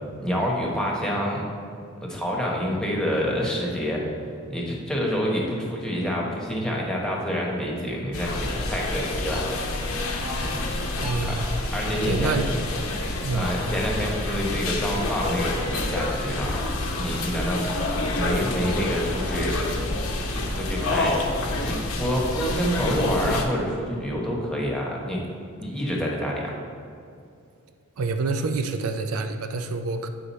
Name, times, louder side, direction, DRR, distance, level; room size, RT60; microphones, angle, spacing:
voice 1, 0.2-1.5 2.0-4.0 4.5-9.5 10.3-10.6 11.3-11.4 11.7-12.4 13.3-17.7 18.1-19.5 20.3-21.2 21.5-25.2 25.6-26.5, equal, 5° left, -3 dB, 1.2 m, -27 dB
sound 1, 8.1-23.4, left 2 dB, 80° left, 0.9 m, -28 dB
voice 2, 11.0-11.5 12.0-12.5 13.2-13.5 28.0-30.1, right 4 dB, 80° right, 6 dB, 0.5 m, -27 dB
8.6 x 4.9 x 4.2 m, 2.5 s
head